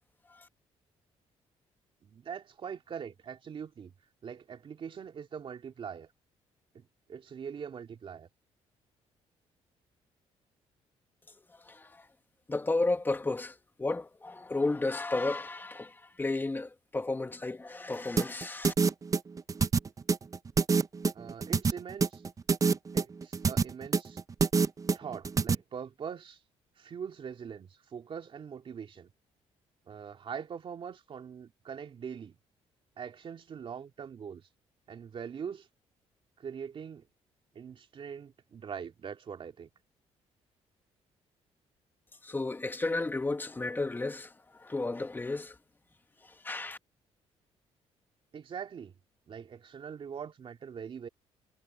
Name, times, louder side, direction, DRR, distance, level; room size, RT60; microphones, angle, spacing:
voice 1, 2.0-3.9 4.2-6.1 6.7-8.3 21.1-22.2 22.9-24.2 24.9-26.4 26.8-29.1 29.9-32.4 33.0-34.5 34.9-35.7 36.4-37.1 37.5-39.7 48.3-48.9 49.3-51.1, right 7 dB, 50° right, 2.7 m, -42 dB
voice 2, 11.6-12.0 12.5-18.7 42.2-45.6 46.4-46.8, left 2 dB, 15° left, 1.3 m, -33 dB
sound 1, 18.2-25.5, right 5 dB, 30° right, 0.7 m, -26 dB
cardioid pair, 100°, 12 cm